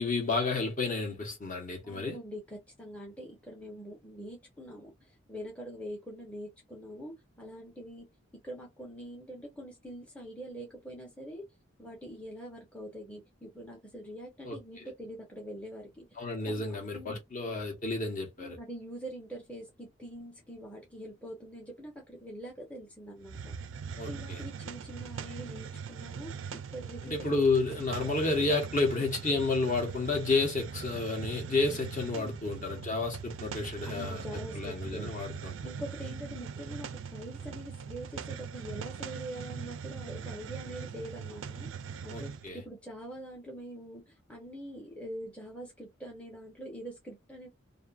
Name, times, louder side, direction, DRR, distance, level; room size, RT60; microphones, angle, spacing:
voice 1, 0.0-2.2 14.4-14.6 16.2-18.6 24.0-24.4 27.0-35.5 42.1-42.6, left 3 dB, 40° left, 1.0 m, -31 dB
voice 2, 1.8-8.1 8.4-11.4 11.8-16.1 16.5-17.2 18.4-23.6 24.1-27.4 32.1-32.4 33.9-35.1 35.6-41.7 42.0-47.5, equal, 5° left, 0.7 m, -44 dB
Hiss, 23.2-42.5, right 6 dB, 75° right, 0.4 m, -41 dB
2.6 x 2.6 x 2.3 m
head